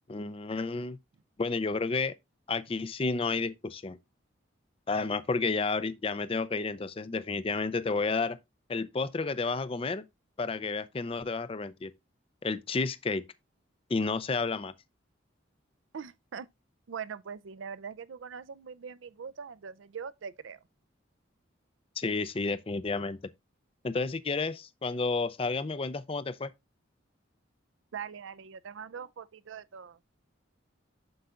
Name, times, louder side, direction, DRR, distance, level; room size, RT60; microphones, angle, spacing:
voice 1, 0.1-1.0 1.4-2.2 2.5-4.0 4.9-8.4 8.7-10.0 10.4-11.9 12.4-13.3 13.9-14.7 22.0-23.2 23.8-26.5, left 4 dB, 30° left, 0.4 m, -31 dB
voice 2, 15.9-16.5 16.9-20.6 27.9-30.0, right 6 dB, 75° right, 0.4 m, -42 dB
7.8 x 6.8 x 2.4 m
head